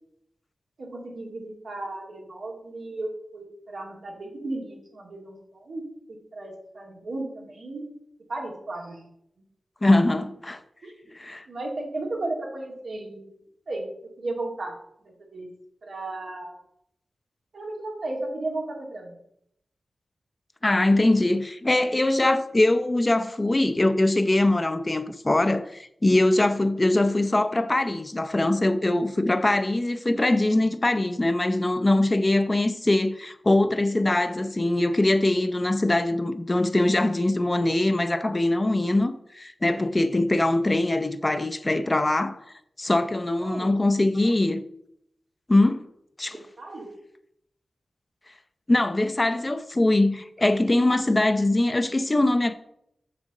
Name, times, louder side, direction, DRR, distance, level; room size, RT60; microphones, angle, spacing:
voice 1, 0.8-7.9 8.3-9.1 10.8-10.9 11.5-13.3 13.7-13.9 14.2-14.8 15.3-15.5 15.8-16.6 17.5-19.1 43.4-43.7 46.3-46.9, right 2 dB, 75° right, 2.2 m, -34 dB
voice 2, 9.8-10.6 11.1-11.5 20.6-42.4 42.8-44.6 45.5-45.9 46.2-46.4 48.7-52.5, left 2 dB, 30° left, 0.5 m, -22 dB
7.3 x 4.2 x 6.4 m
cardioid pair, 60°, 0 cm